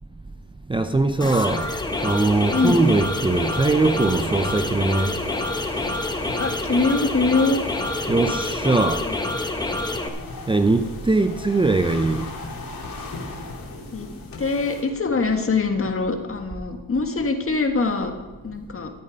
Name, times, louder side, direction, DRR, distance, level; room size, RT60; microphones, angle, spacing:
voice 1, 0.7-1.7 2.0-5.1 8.1-9.1 10.5-12.3, right 2 dB, 15° right, 0.6 m, -21 dB
sound 1, 1.1-14.8, left 4 dB, 80° left, 2.6 m, -38 dB
sound 2, 1.2-10.1, left 2 dB, 10° left, 1.1 m, -27 dB
voice 2, 2.5-2.8 6.4-7.6 9.1-9.2 13.9-14.1 14.4-18.1 18.4-18.9, left 3 dB, 40° left, 1.6 m, -23 dB
13.5 x 8.6 x 5.2 m
cardioid pair, 85°, 34 cm